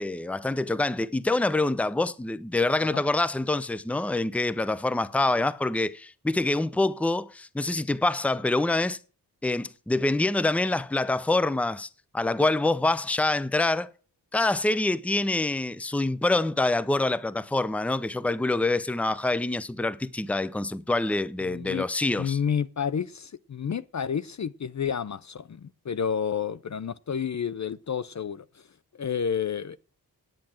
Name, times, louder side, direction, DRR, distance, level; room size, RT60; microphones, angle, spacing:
voice 1, 0.0-9.0 9.4-11.9 12.1-13.9 14.3-22.4, left 2 dB, 5° left, 0.6 m, -26 dB
voice 2, 21.4-21.9 22.2-28.4 28.9-29.8, left 7 dB, 45° left, 0.6 m, -30 dB
9.0 x 8.6 x 7.4 m
cardioid pair, 50°, 41 cm